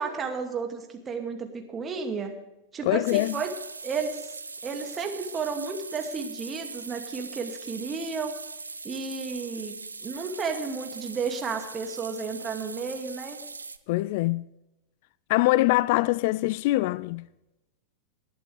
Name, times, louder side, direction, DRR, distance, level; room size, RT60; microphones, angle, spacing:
voice 1, 0.0-2.3 2.7-3.5 3.8-4.3 4.6-8.4 8.8-9.8 10.0-13.4, right 5 dB, 20° right, 2.4 m, -32 dB
voice 2, 2.9-3.4 13.9-14.5 15.3-17.3, left 19 dB, 50° left, 0.3 m, -23 dB
sound 1, 3.0-13.8, right 4 dB, 80° right, 0.6 m, -41 dB
21.0 x 11.0 x 3.4 m
figure-of-eight pair, 90°, 0 cm